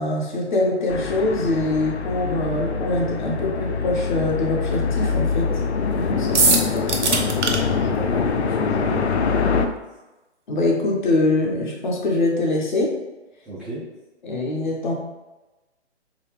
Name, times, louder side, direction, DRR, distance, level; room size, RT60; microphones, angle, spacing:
voice 1, 0.0-5.5 5.9-6.6 9.6-9.7 10.5-13.0 14.2-14.9, left 2 dB, 40° left, -1 dB, 0.8 m, -23 dB
sound 1, 0.9-9.7, left 5 dB, 65° left, 0.5 m, -24 dB
sound 2, 6.3-7.6, right 4 dB, 75° right, 0.8 m, -19 dB
voice 2, 7.0-9.0 13.4-13.8, right 2 dB, ahead, -16 dB, 0.6 m, -34 dB
4.0 x 2.8 x 3.1 m, 1.1 s
figure-of-eight pair, 135°, 36 cm